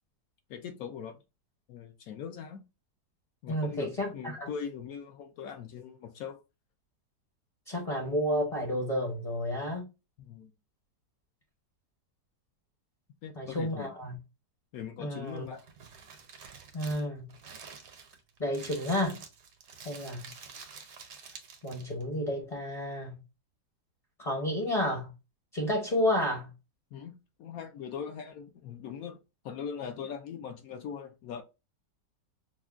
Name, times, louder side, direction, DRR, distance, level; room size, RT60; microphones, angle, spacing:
voice 1, 0.5-1.2 1.7-2.6 3.4-6.4 10.2-10.5 13.2-13.9 14.7-15.6 26.9-29.2 29.4-31.4, left 7 dB, 70° left, 0.9 m, -41 dB
voice 2, 3.5-4.5 7.7-9.9 13.3-14.2 15.0-15.5 16.7-17.3 18.4-19.2 19.8-20.3 21.6-23.2 24.2-25.1 25.5-26.5, left 1 dB, 35° left, 0.6 m, -31 dB
Crumpling crinkling, 15.2-22.0, right 5 dB, 65° right, 1.1 m, -49 dB
5.9 x 2.1 x 2.3 m
omnidirectional pair, 1.8 m